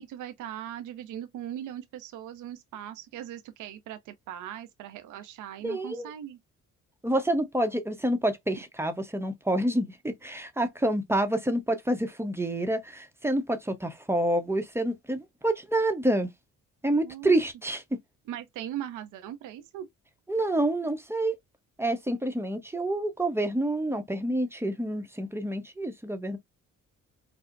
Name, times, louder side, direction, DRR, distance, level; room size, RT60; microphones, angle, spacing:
voice 1, 0.0-6.4 17.0-17.4 18.3-19.9, right 11 dB, 80° right, 0.6 m, -39 dB
voice 2, 5.6-6.1 7.0-16.3 16.8-17.8 20.3-21.4 21.8-26.4, right 1 dB, 10° right, 0.7 m, -28 dB
4.4 x 2.0 x 2.4 m
cardioid pair, 90°, 30 cm